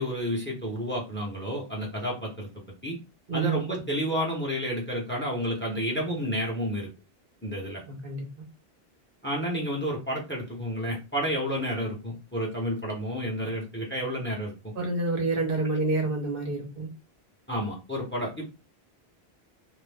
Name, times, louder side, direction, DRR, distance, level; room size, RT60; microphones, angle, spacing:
voice 1, 0.0-2.5 2.8-3.0 3.3-6.9 7.4-7.8 9.2-14.7 17.5-18.4, equal, 10° left, -2 dB, 0.9 m, -30 dB
voice 2, 7.9-8.3 14.8-16.9, right 3 dB, 65° right, 1 dB, 1.2 m, -28 dB
2.6 x 2.5 x 3.4 m, 0.28 s
omnidirectional pair, 1.0 m